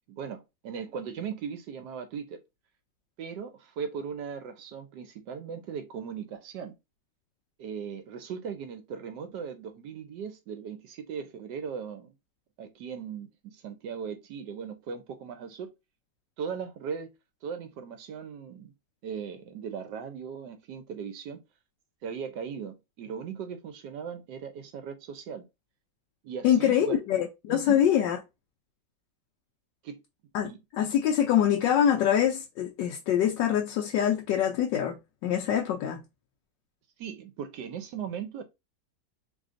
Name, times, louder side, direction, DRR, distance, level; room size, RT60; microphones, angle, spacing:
voice 1, 0.1-2.4 3.2-6.8 7.6-12.1 12.6-15.7 16.4-17.1 17.4-18.7 19.0-21.4 22.0-25.5 26.2-27.0 27.5-27.9 29.8-30.0 30.4-30.6 37.0-38.4, right 7 dB, 75° right, 1.2 m, -38 dB
voice 2, 26.4-28.2 30.3-36.0, left 10 dB, 85° left, 1.2 m, -25 dB
3.8 x 3.3 x 2.5 m
omnidirectional pair, 1.9 m